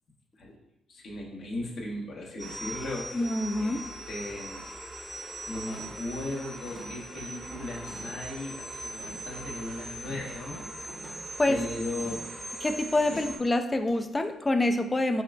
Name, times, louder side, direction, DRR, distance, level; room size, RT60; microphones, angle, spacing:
voice 1, 0.9-3.2 3.6-4.7 5.5-10.6 10.8-11.2 11.5-12.3 13.1-13.2, left 1 dB, 65° left, -3 dB, 0.9 m, -37 dB
sound 1, 2.4-13.4, right 1 dB, 25° right, 0.8 m, -41 dB
voice 2, 3.1-3.8 11.4-11.6 12.6-15.2, left 2 dB, 20° left, 8 dB, 0.3 m, -26 dB
sound 2, 3.9-4.0 4.5-4.7 5.1-5.4 5.7-6.1 6.7-8.3 9.0-9.3 10.0-11.3 12.0-12.4 13.0-13.5 13.9-14.0, right 1 dB, 80° right, 0.9 m, -47 dB
5.6 x 2.4 x 2.3 m, 0.82 s
cardioid pair, 90°, 0 cm